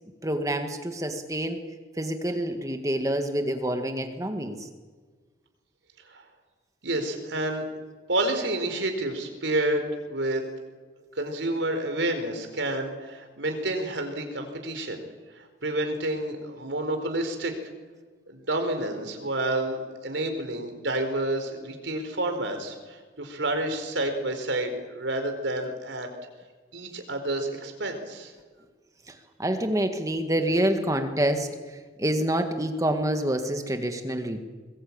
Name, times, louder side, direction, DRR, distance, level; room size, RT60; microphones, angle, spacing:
voice 1, 0.2-1.6 2.0-4.6 29.4-31.5 32.0-34.4, right 1 dB, 20° right, 6 dB, 1.8 m, -27 dB
voice 2, 6.8-7.6 8.1-10.4 11.2-15.0 15.4-17.7 18.3-26.1 26.7-28.3, right 1 dB, 75° right, 5 dB, 4.4 m, -29 dB
21.5 x 21.5 x 8.8 m, 1.4 s
head